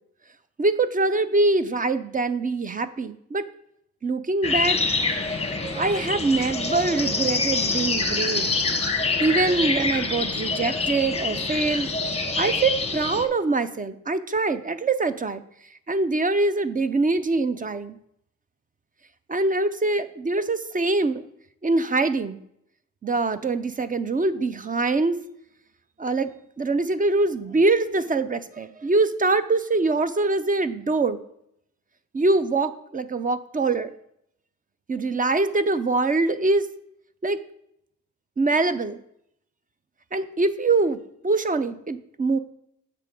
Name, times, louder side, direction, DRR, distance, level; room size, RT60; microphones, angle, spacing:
voice 1, 0.6-3.5 4.0-4.8 5.7-8.5 9.2-11.9 12.4-15.4 15.9-18.0 19.3-21.2 21.6-22.4 23.0-25.2 26.0-31.2 32.1-33.9 34.9-36.7 37.2-37.4 38.4-39.0 40.1-42.4, right 3 dB, 30° right, 12 dB, 0.5 m, -24 dB
sound 1, 4.4-13.3, left 3 dB, 20° left, 1.0 m, -26 dB
7.7 x 6.2 x 3.7 m, 0.73 s
cardioid pair, 75°, 30 cm